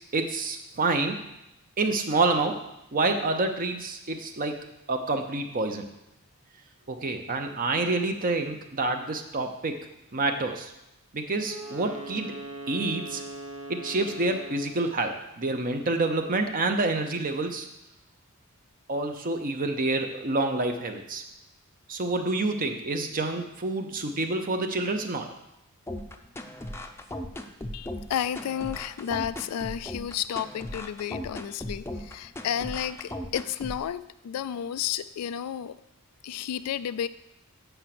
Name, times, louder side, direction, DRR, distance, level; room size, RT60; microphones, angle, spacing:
voice 1, 0.1-1.2 1.8-2.6 2.9-4.6 4.9-5.9 6.9-9.8 10.1-10.7 11.1-12.3 12.7-13.2 13.7-17.7 18.9-21.2 21.9-25.3, right 2 dB, 40° right, 5 dB, 0.7 m, -28 dB
Wind instrument woodwind instrument, 11.4-15.1, right 2 dB, 75° right, 1.0 m, -40 dB
sound 1, 25.9-33.8, left 1 dB, 10° left, 0.6 m, -37 dB
voice 2, 27.7-35.7 36.2-37.1, left 9 dB, 85° left, 16 dB, 0.3 m, -32 dB
7.9 x 5.7 x 5.9 m, 0.87 s
head